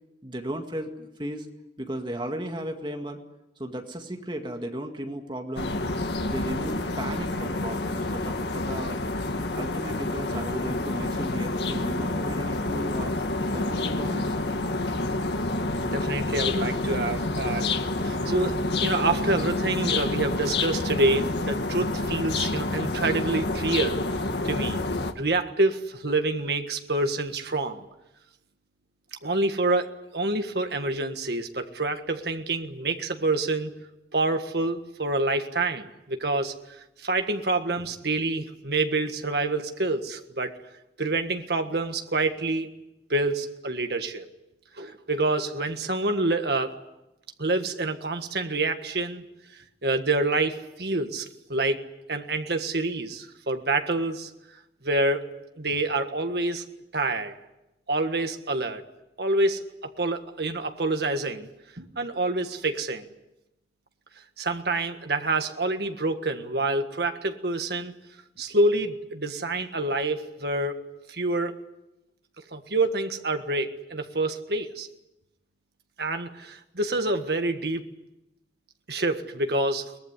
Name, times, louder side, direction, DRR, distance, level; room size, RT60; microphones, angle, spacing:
voice 1, 0.2-1.5 1.8-3.2 3.6-5.7 6.2-9.0 9.6-13.1 13.5-14.4 15.3-15.4, right 1 dB, 25° right, 4 dB, 2.1 m, -35 dB
sound 1, 5.6-25.1, left 2 dB, 75° left, 1.8 m, -28 dB
voice 2, 15.9-17.7 18.0-24.0 24.4-24.8 25.1-27.8 29.2-33.7 34.1-36.5 37.0-40.5 41.0-42.7 43.1-44.3 44.8-46.7 47.4-49.2 49.8-51.8 52.1-54.3 54.8-55.3 55.6-56.6 56.9-57.3 57.9-58.8 59.2-59.6 60.0-61.5 61.8-63.1 64.4-67.9 68.4-70.8 71.1-71.5 72.5-74.9 76.0-77.8 78.9-79.9, right 2 dB, 65° right, 6 dB, 1.6 m, -27 dB
23.0 x 19.5 x 9.8 m, 0.93 s
head